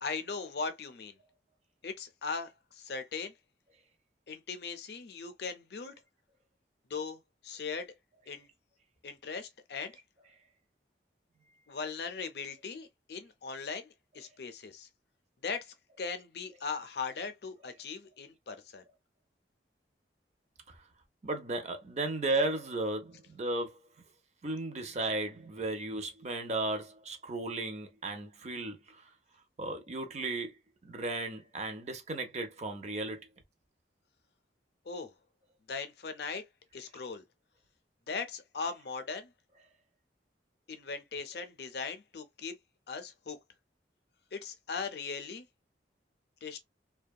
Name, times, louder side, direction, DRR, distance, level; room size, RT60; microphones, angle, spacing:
voice 1, 0.0-1.2 1.8-3.3 4.3-5.9 6.9-7.9 8.3-8.5 9.0-9.9 11.7-14.9 15.4-18.8 34.9-35.1 35.7-36.4 36.7-37.2 38.1-39.3 40.7-42.5 42.9-43.4 44.3-45.5 46.4-46.6, left 5 dB, 60° left, 0.5 m, -39 dB
voice 2, 21.2-23.8 24.4-29.1 29.6-30.5 30.8-33.2, right 2 dB, 40° right, 0.6 m, -35 dB
2.7 x 2.2 x 2.2 m
head